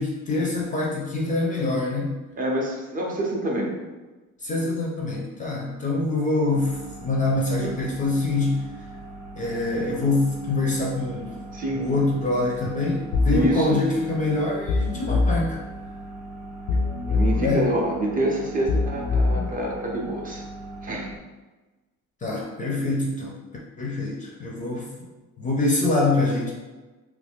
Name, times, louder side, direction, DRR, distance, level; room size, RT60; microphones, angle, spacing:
voice 1, 0.0-2.2 4.4-8.7 9.4-11.4 11.7-15.6 17.4-17.7 22.2-23.4 23.8-24.9 25.4-26.5, left 2 dB, 25° left, -2 dB, 0.4 m, -25 dB
voice 2, 2.4-3.7 7.6-7.7 11.5-11.8 13.3-13.8 17.1-20.4 20.8-21.1 22.6-22.7, right 1 dB, 25° right, -2 dB, 0.5 m, -27 dB
sound 1, 6.5-21.2, right 2 dB, 85° right, 0.9 m, -40 dB
sound 2, 13.1-13.5 14.7-15.5 16.7-17.5 18.7-19.5, left 3 dB, 85° left, 0.6 m, -22 dB
3.0 x 2.5 x 3.4 m, 1.2 s
cardioid pair, 155°, 32 cm